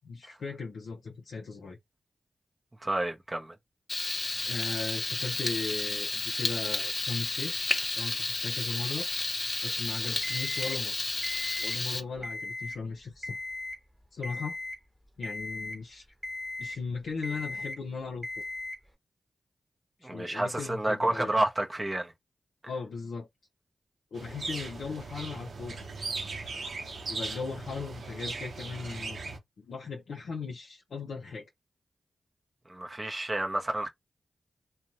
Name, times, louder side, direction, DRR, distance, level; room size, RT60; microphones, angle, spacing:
voice 1, 0.0-1.8 4.5-7.6 8.0-9.1 9.6-11.0 11.6-13.4 14.1-14.6 15.2-16.0 16.6-18.3 20.1-21.3 22.7-23.3 24.1-26.1 27.1-29.2 29.6-31.4, left 4 dB, 85° left, 0.5 m, -38 dB
voice 2, 2.8-3.6 10.0-10.2 20.0-22.1 32.7-33.9, right 1 dB, 30° right, 0.6 m, -30 dB
Frying (food), 3.9-12.0, left 2 dB, 35° left, 0.5 m, -32 dB
Alarm, 10.2-10.8 11.2-11.8 12.2-12.8 13.2-13.8 14.2-14.8 15.2-15.8 16.2-16.8 17.2-17.8 18.2-18.8, left 2 dB, 10° right, 0.9 m, -37 dB
sound 1, 24.1-29.4, right 3 dB, 75° right, 0.7 m, -38 dB
2.7 x 2.1 x 2.8 m
cardioid pair, 45°, 0 cm